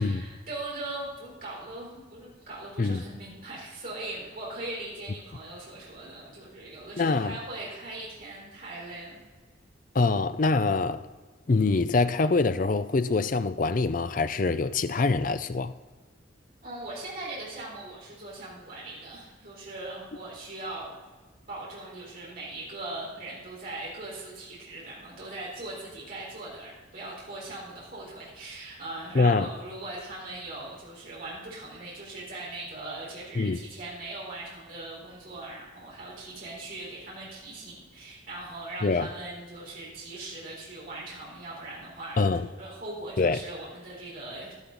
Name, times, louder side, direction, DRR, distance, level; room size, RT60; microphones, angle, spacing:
voice 1, 0.0-9.2 16.6-21.0 21.5-44.5, right 2 dB, 45° right, 3.8 m, -40 dB
voice 2, 7.0-7.4 9.9-11.1 11.5-15.7 29.1-29.5 33.4-33.6 38.8-39.1 42.2-42.5 43.2-43.4, left 3 dB, 40° left, 0.5 m, -24 dB
11.5 x 11.5 x 3.9 m
head